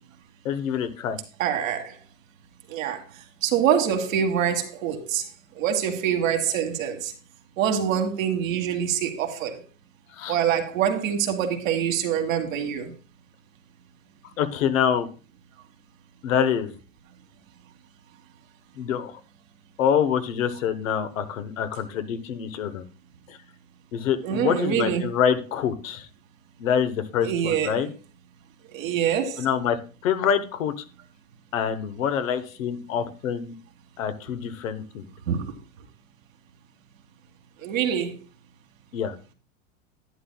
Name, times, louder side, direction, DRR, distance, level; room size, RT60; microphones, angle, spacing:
voice 1, 0.4-1.2 10.1-10.4 14.4-15.1 16.2-16.7 18.7-19.2 19.8-22.8 23.3-23.4 23.9-26.1 26.6-27.9 29.4-29.8 30.0-30.7 31.5-33.5 34.0-35.0 38.9-39.1, left 8 dB, 85° left, 1.2 m, -26 dB
voice 2, 1.4-2.0 2.7-3.0 3.4-5.2 5.6-7.1 7.6-9.6 10.3-12.9 24.2-25.1 27.2-27.8 28.7-29.5 35.3-35.5 37.6-38.2, right 8 dB, 85° right, 1.9 m, -25 dB
11.0 x 9.3 x 2.3 m
supercardioid pair, 115°, 39 cm